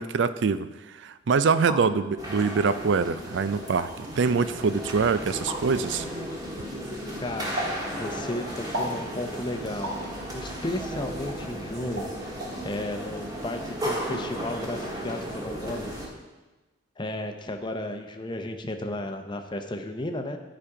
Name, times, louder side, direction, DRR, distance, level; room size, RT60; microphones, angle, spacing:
voice 1, 0.0-6.1, right 5 dB, 65° right, 14 dB, 0.4 m, -24 dB
sound 1, 1.4-1.8 2.7-2.8 3.6-3.9 5.5-5.6 7.6-7.8 8.7-9.0 9.8-10.0 11.3-11.4 12.0-12.1 12.4-12.5, right 1 dB, 85° right, 1.9 m, -32 dB
sound 2, 2.2-16.1, equal, 20° right, 1.5 m, -35 dB
voice 2, 7.2-7.6 8.0-9.9 10.3-12.0 12.6-15.9 17.0-20.4, left 1 dB, 25° left, 5 dB, 0.7 m, -33 dB
11.5 x 5.1 x 4.8 m, 1.2 s
head